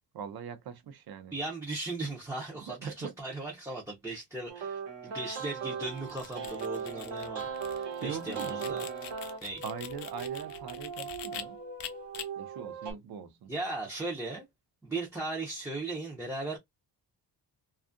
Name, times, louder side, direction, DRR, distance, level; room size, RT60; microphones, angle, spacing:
voice 1, 0.1-1.3 2.5-3.1 5.0-5.2 8.0-8.8 9.6-11.6 12.4-13.5, right 7 dB, 60° right, 0.6 m, -41 dB
voice 2, 1.3-8.9 9.4-9.6 13.5-14.5 14.8-16.6, right 2 dB, 5° right, 0.4 m, -37 dB
sound 1, 4.5-12.9, right 6 dB, 75° right, 0.9 m, -38 dB
sound 2, 5.9-11.4 11.8-12.2, left 10 dB, 70° left, 0.6 m, -44 dB
2.6 x 2.3 x 2.4 m
wide cardioid pair, 170°, 43 cm